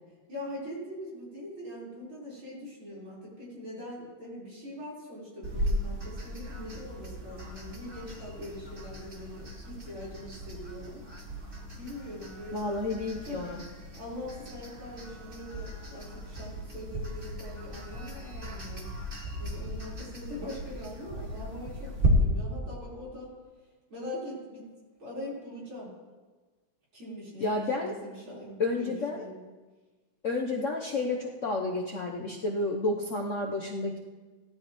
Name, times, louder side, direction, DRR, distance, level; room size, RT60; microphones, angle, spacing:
voice 1, 0.3-11.1 11.8-12.6 13.3-13.4 13.9-18.9 19.4-23.3 23.9-24.7 25.0-25.9 26.9-29.4, left 1 dB, 75° right, -6 dB, 5.2 m, -42 dB
sound 1, 5.4-22.1, right 1 dB, 25° right, 1.8 m, -37 dB
voice 2, 12.5-13.6 27.4-27.9 28.6-29.3 30.2-34.0, left 2 dB, 55° left, 0 dB, 0.9 m, -31 dB
17.5 x 12.0 x 3.1 m, 1.3 s
omnidirectional pair, 2.3 m